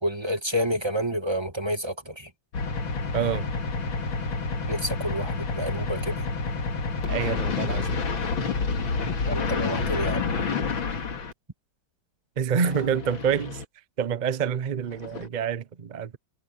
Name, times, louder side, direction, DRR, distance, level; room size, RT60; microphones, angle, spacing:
voice 1, 0.0-2.3 4.7-6.3 9.3-10.3, equal, 15° right, 2.0 m, -29 dB
sound 1, 2.5-11.3 12.6-13.6 14.9-15.3, left 4 dB, 80° left, 2.9 m, -29 dB
voice 2, 3.1-3.5 7.1-8.0 12.4-13.6 14.0-16.2, right 7 dB, 45° right, 0.5 m, -27 dB
omnidirectional pair, 2.2 m